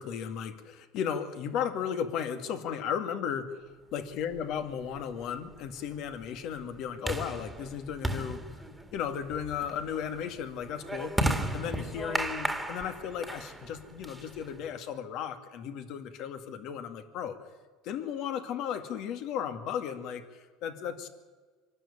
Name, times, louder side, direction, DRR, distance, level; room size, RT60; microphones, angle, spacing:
voice 1, 0.0-8.4 8.9-11.2 11.5-17.4 17.8-21.1, left 8 dB, 55° left, 8 dB, 2.3 m, -35 dB
sound 1, 4.4-14.7, right 1 dB, 5° right, 2.1 m, -35 dB
24.5 x 12.5 x 10.0 m, 1.5 s
cardioid pair, 140°, 0 cm